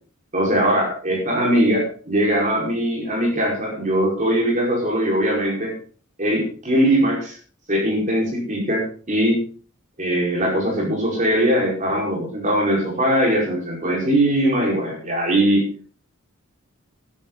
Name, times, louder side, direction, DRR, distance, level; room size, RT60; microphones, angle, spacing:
voice 1, 0.3-5.7 6.2-7.4 7.7-9.4 10.0-15.8, right 1 dB, 35° right, -2 dB, 5.0 m, -21 dB
14.0 x 13.0 x 4.0 m, 0.42 s
head